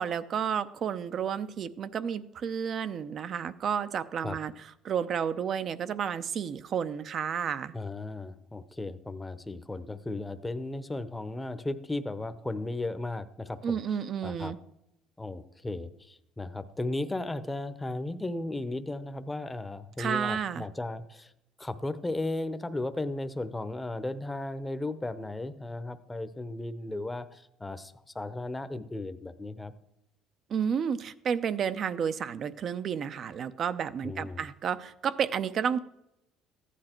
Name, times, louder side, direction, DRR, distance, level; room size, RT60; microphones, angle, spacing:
voice 1, 0.0-4.5 4.8-7.7 13.6-14.6 20.0-20.6 30.5-35.8, right 7 dB, 50° right, 13 dB, 0.6 m, -31 dB
voice 2, 7.7-13.8 14.2-14.5 15.2-21.3 21.6-29.7 34.0-34.5, left 2 dB, 10° left, 12 dB, 0.8 m, -35 dB
14.5 x 10.0 x 4.5 m, 0.86 s
supercardioid pair, 100°, 0 cm